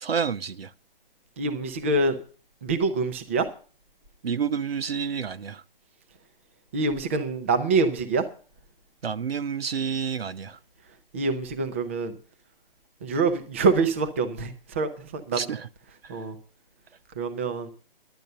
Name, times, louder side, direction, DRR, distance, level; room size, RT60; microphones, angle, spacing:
voice 1, 0.0-0.7 4.2-5.6 9.0-10.6 15.3-15.7 16.0-16.1, right 6 dB, 80° right, 0.9 m, -29 dB
voice 2, 1.4-2.2 2.6-3.5 6.7-8.2 11.1-12.1 13.0-15.5 16.1-16.3 17.2-17.7, right 3 dB, 15° right, 0.6 m, -25 dB
11.0 x 8.9 x 6.6 m
hypercardioid pair, 165°, 29 cm